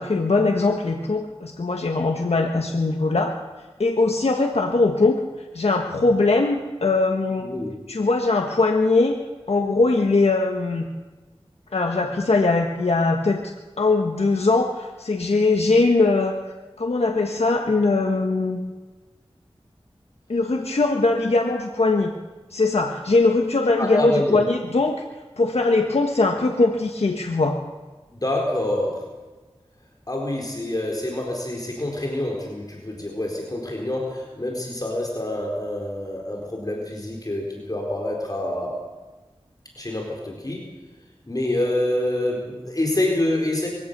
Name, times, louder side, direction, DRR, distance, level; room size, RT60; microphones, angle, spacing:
voice 1, 0.0-3.3 3.8-5.2 5.5-7.5 7.9-9.1 9.5-10.9 11.7-13.5 13.8-16.3 16.8-18.6 20.3-22.1 22.5-25.0 25.4-27.6, left 3 dB, 75° left, 3 dB, 1.5 m, -21 dB
voice 2, 7.4-7.7 23.8-24.4 28.1-29.1 30.1-38.8 39.8-40.7 41.3-43.7, left 1 dB, 35° left, -1 dB, 4.3 m, -26 dB
22.5 x 17.0 x 6.8 m, 1.2 s
wide cardioid pair, 50°, 10 cm